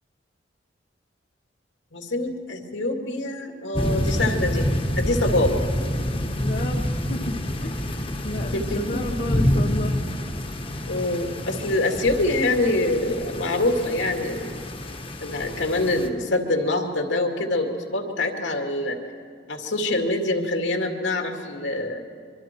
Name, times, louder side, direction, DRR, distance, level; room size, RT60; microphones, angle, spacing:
voice 1, 1.9-4.7 5.0-5.6 8.5-9.5 10.9-14.5 15.2-19.0 19.5-22.0, left 2 dB, 85° left, 3 dB, 2.3 m, -25 dB
sound 1, 3.7-16.1, left 1 dB, 30° left, 1.3 m, -27 dB
voice 2, 6.4-10.0, left 1 dB, 45° left, 2 dB, 0.9 m, -33 dB
25.0 x 24.0 x 4.5 m, 2.3 s
head